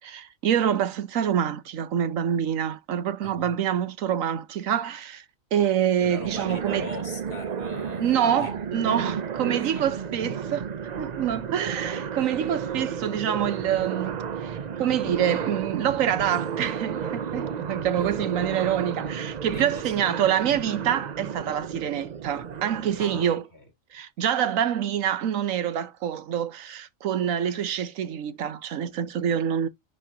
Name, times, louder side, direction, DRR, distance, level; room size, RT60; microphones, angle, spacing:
voice 1, 0.0-5.2 5.5-6.9 8.0-10.7 11.0-23.4 23.9-29.7, right 9 dB, 75° right, 1.2 m, -26 dB
voice 2, 6.0-10.1 18.0-18.3 19.5-20.1 23.0-23.7, left 1 dB, 50° left, 3.2 m, -41 dB
sound 1, 6.0-23.2, right 7 dB, 45° right, 0.5 m, -33 dB
10.5 x 4.4 x 2.8 m
omnidirectional pair, 1.4 m